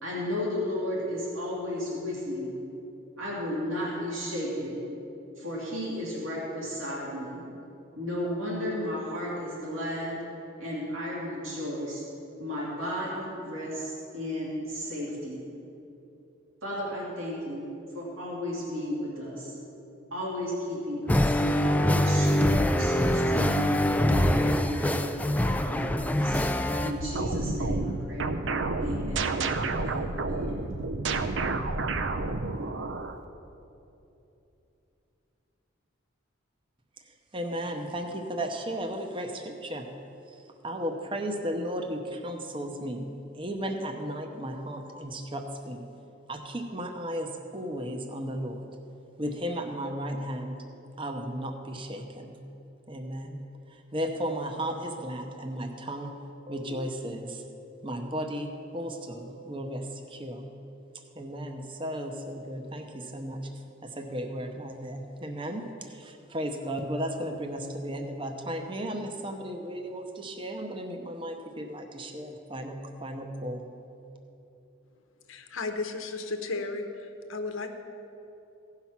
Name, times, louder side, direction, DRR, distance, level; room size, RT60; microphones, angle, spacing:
voice 1, 0.0-2.5 3.2-4.8 5.4-7.4 7.9-10.2 10.6-12.0 12.4-15.4 16.6-17.6 17.9-19.5 20.1-23.7 24.0-26.4 26.8-28.3 28.8-30.6, left 1 dB, 85° right, -5 dB, 2.8 m, -34 dB
sound 1, 21.1-26.9, left 1 dB, 5° left, 0.3 m, -24 dB
sound 2, 27.0-33.2, right 3 dB, 65° right, 0.6 m, -30 dB
voice 2, 37.3-39.9 40.6-45.9 46.3-48.8 49.2-50.6 51.0-52.4 52.9-53.4 53.7-56.2 56.5-57.4 57.8-60.5 61.1-63.5 63.8-73.6, equal, 25° right, 4 dB, 0.7 m, -35 dB
voice 3, 75.3-77.7, left 3 dB, 85° left, 6 dB, 0.9 m, -34 dB
16.5 x 5.8 x 5.9 m, 2.9 s
head